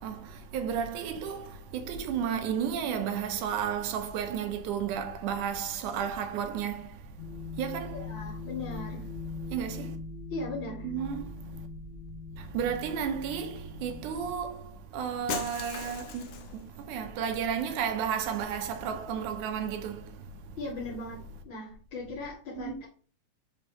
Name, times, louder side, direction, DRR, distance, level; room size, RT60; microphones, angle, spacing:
voice 1, 0.0-7.0 7.6-8.0 9.5-10.0 10.8-11.3 12.4-20.2 22.6-22.8, right 8 dB, 80° right, 2.3 m, -33 dB
sound 1, 7.2-14.3, left 3 dB, 60° left, 2.3 m, -41 dB
voice 2, 7.9-9.1 10.3-10.9 20.6-22.9, left 2 dB, 40° left, 2.8 m, -38 dB
Shatter, 15.3-16.6, left 8 dB, 85° left, 2.4 m, -37 dB
6.8 x 5.2 x 3.0 m
omnidirectional pair, 3.5 m